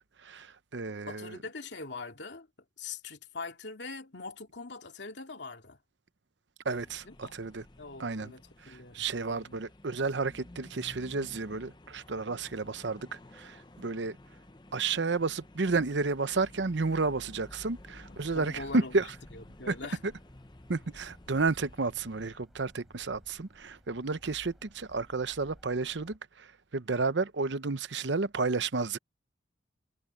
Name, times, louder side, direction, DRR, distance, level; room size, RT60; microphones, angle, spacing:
voice 1, 0.2-1.4 6.6-7.6 8.0-8.3 8.6-14.2 14.7-19.1 19.7-19.8 20.0-20.1 20.7-29.0, right 3 dB, 80° right, 0.8 m, -31 dB
voice 2, 1.1-2.5 2.8-5.8 7.0-7.3 7.8-9.5 18.3-18.9 19.3-20.0, left 3 dB, 75° left, 2.5 m, -43 dB
sound 1, 6.7-22.4, left 1 dB, 25° left, 0.7 m, -53 dB
sound 2, 17.5-26.2, equal, ahead, 6.1 m, -58 dB
head